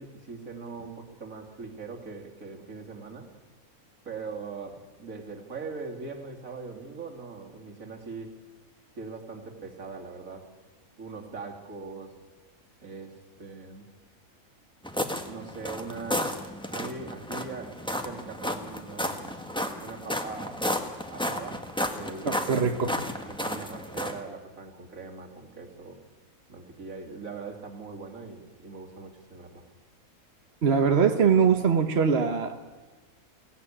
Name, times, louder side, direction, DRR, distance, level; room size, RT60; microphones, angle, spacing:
voice 1, 0.0-3.3 4.0-8.4 9.0-10.5 11.0-12.1 12.8-13.8 15.2-16.3 16.7-19.3 19.8-20.7 21.1-22.9 23.3-26.0 26.5-29.6, right 4 dB, 70° right, 2 dB, 3.2 m, -41 dB
sound 1, 14.8-24.2, equal, 5° left, 1.5 m, -33 dB
voice 2, 22.3-22.9 30.6-32.5, right 6 dB, 50° right, 6 dB, 1.3 m, -22 dB
22.0 x 17.0 x 9.9 m, 1.3 s
omnidirectional pair, 1.5 m